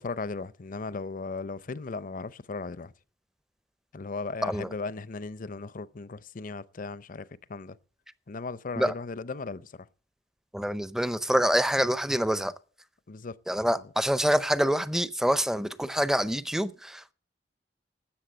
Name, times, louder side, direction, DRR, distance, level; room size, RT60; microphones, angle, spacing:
voice 1, 0.0-2.9 3.9-7.8 8.3-9.9 13.1-13.3, left 3 dB, 50° left, 0.6 m, -37 dB
voice 2, 4.4-4.7 8.8-8.9 10.5-12.5 13.5-17.1, equal, 5° right, 0.6 m, -26 dB
13.0 x 8.1 x 7.9 m
head